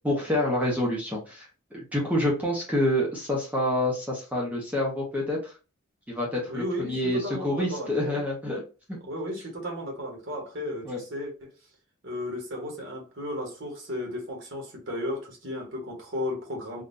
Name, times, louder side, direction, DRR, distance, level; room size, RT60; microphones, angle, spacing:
voice 1, 0.0-5.5 6.1-8.6 8.9-9.0 10.8-11.0, left 1 dB, 5° right, 0.7 m, -27 dB
voice 2, 6.5-8.2 9.0-11.5 12.0-16.8, left 1 dB, 60° right, 1.1 m, -34 dB
3.7 x 2.3 x 2.5 m
head